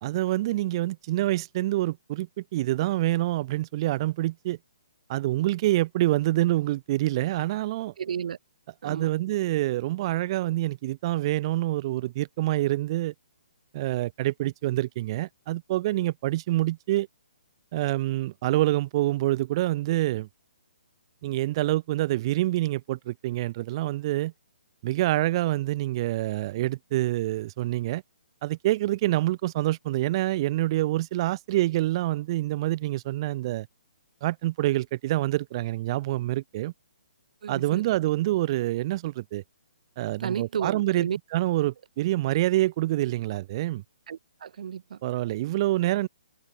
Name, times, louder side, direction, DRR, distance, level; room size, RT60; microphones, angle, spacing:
voice 1, 0.0-4.6 5.1-7.9 8.8-13.1 13.7-17.1 17.7-20.3 21.2-24.3 24.8-28.0 28.4-33.7 34.2-36.7 37.5-39.4 40.0-43.8 45.0-46.1, right 16 dB, 35° right, 0.3 m, -26 dB
voice 2, 8.0-8.4 8.8-9.1 37.4-37.8 40.2-41.2 44.1-45.0, right 8 dB, 60° right, 0.9 m, -32 dB
hypercardioid pair, 145°, 5 cm